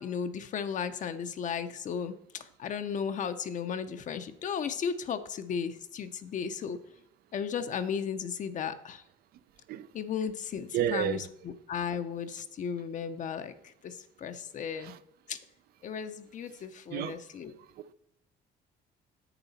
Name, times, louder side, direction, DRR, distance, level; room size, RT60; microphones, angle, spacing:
voice 1, 0.0-6.8 7.3-9.0 9.9-14.9 15.3-15.4 15.8-17.5, left 7 dB, 50° left, 0.6 m, -35 dB
voice 2, 10.7-11.2 14.7-15.0 16.9-17.2, right 10 dB, 65° right, 0.5 m, -31 dB
8.0 x 6.9 x 4.1 m
cardioid pair, 110°, 17 cm